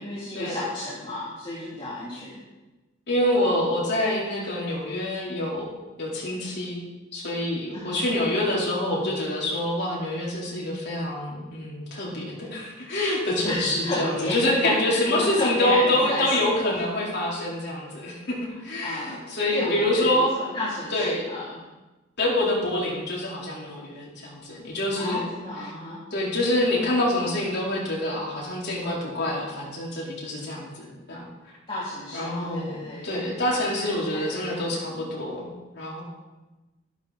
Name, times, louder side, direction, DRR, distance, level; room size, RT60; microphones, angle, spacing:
voice 1, 0.0-2.4 3.3-3.4 7.7-8.0 13.4-16.8 18.8-19.2 19.5-21.6 24.9-26.0 31.7-35.1, left 1 dB, 25° left, -9 dB, 3.2 m, -32 dB
voice 2, 3.1-5.7 6.0-6.8 7.1-20.3 20.9-21.2 22.2-25.3 26.1-31.2 32.1-36.0, left 1 dB, 55° left, -4 dB, 4.2 m, -26 dB
13.5 x 11.5 x 4.3 m, 1.1 s
head